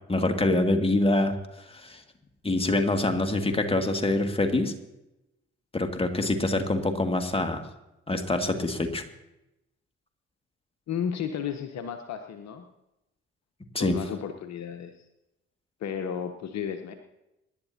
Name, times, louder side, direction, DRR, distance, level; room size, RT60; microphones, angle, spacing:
voice 1, 0.1-1.3 1.7-2.0 2.4-4.7 5.7-7.6 8.1-9.0 13.7-14.0, left 2 dB, 15° left, 5 dB, 2.0 m, -25 dB
voice 2, 10.9-12.7 13.8-15.0 15.8-16.9, left 8 dB, 55° left, 7 dB, 1.0 m, -33 dB
25.5 x 11.0 x 2.8 m, 0.92 s
figure-of-eight pair, 40°, 32 cm